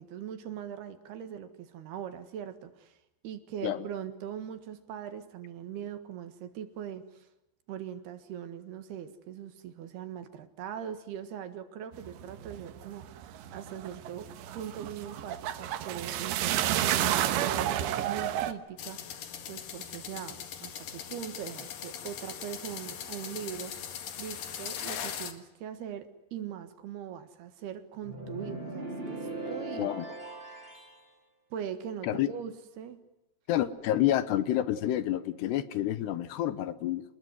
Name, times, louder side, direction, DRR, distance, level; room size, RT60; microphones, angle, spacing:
voice 1, 0.0-3.0 3.2-7.3 7.7-14.3 14.5-19.0 19.5-23.7 24.2-30.2 30.5-30.7 31.5-33.0, right 9 dB, 65° right, 10 dB, 3.5 m, -41 dB
sound 1, 11.9-18.5, right 11 dB, 85° right, 3.5 m, -31 dB
sound 2, 18.8-25.3, left 8 dB, 60° left, 3.3 m, -40 dB
sound 3, 28.0-31.0, right 2 dB, 10° right, 5.9 m, -39 dB
voice 2, 33.5-37.0, left 13 dB, 75° left, 14 dB, 3.1 m, -28 dB
27.0 x 20.5 x 9.6 m, 0.92 s
omnidirectional pair, 5.1 m